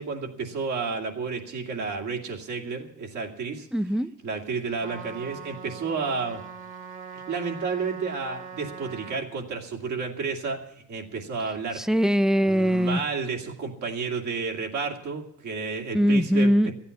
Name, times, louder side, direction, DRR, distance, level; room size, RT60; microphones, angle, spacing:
voice 1, 0.0-3.7 4.2-6.4 7.1-10.6 10.9-11.8 12.5-16.5, right 4 dB, 75° right, 1 dB, 2.6 m, -31 dB
voice 2, 3.7-4.1 11.8-13.0 15.9-16.7, equal, ahead, 16 dB, 0.5 m, -21 dB
Trumpet, 4.8-9.2, right 6 dB, 45° right, 1.7 m, -41 dB
13.5 x 8.7 x 9.7 m, 0.71 s
cardioid pair, 90°, 30 cm